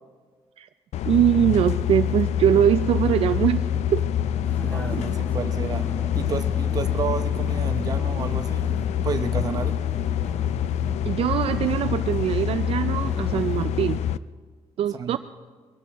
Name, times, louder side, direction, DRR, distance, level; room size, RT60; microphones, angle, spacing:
sound 1, 0.9-14.2, left 10 dB, 80° left, 0.4 m, -26 dB
voice 1, 1.1-4.1 4.9-5.0 11.0-14.0 14.8-15.2, right 10 dB, 60° right, 9 dB, 0.4 m, -22 dB
Vehicle, 4.4-13.7, left 2 dB, 15° left, 0.6 m, -39 dB
voice 2, 4.6-5.9 6.2-8.7 9.0-9.7 14.9-15.2, right 6 dB, 35° right, 8 dB, 0.7 m, -31 dB
22.5 x 17.5 x 3.5 m, 1.5 s
wide cardioid pair, 180°, 11 cm